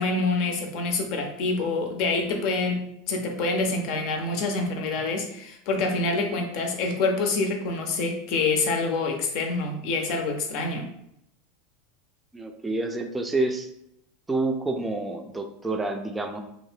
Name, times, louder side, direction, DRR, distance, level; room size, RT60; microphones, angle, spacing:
voice 1, 0.0-10.9, left 3 dB, 60° left, 3 dB, 0.7 m, -26 dB
voice 2, 12.3-13.7 14.3-16.4, right 2 dB, 10° right, 4 dB, 0.4 m, -28 dB
2.7 x 2.0 x 3.2 m, 0.77 s
hypercardioid pair, 100°, 0 cm